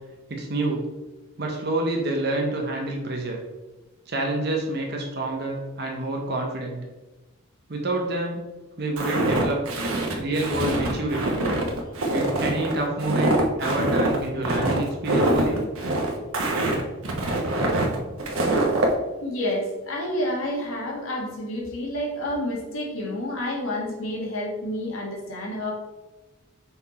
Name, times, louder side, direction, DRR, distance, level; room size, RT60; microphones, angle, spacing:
voice 1, 0.3-0.9 1.4-3.4 4.1-6.8 7.7-8.4 8.8-9.6 10.2-11.5 12.1-15.7, right 2 dB, 50° right, 0 dB, 0.9 m, -28 dB
Walk footsteps, 9.0-18.9, right 1 dB, 90° right, 1.1 m, -24 dB
voice 2, 19.2-25.7, left 1 dB, 80° left, -1 dB, 1.6 m, -29 dB
5.6 x 4.3 x 4.3 m, 1.1 s
head